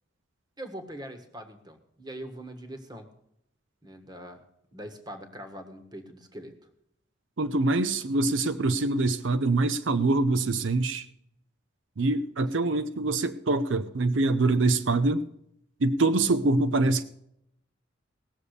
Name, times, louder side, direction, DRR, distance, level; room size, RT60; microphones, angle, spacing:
voice 1, 0.6-3.1 3.8-4.4 4.7-6.5, right 1 dB, 20° right, 7 dB, 1.5 m, -42 dB
voice 2, 7.4-11.1 12.0-15.2 15.8-17.0, right 2 dB, 85° right, 12 dB, 0.6 m, -24 dB
18.0 x 7.1 x 6.7 m, 0.76 s
head